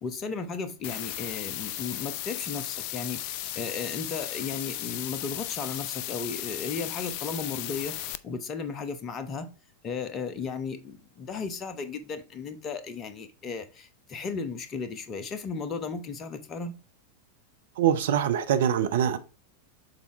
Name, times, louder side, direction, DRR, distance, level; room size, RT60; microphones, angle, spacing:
voice 1, 0.0-8.0 8.2-9.5 9.8-16.8, left 5 dB, 30° left, 0.9 m, -35 dB
sound 1, 0.8-8.1, left 13 dB, 45° left, 0.4 m, -35 dB
voice 2, 17.8-19.2, right 9 dB, 55° right, 0.7 m, -24 dB
6.7 x 4.1 x 3.4 m
figure-of-eight pair, 90°, 0 cm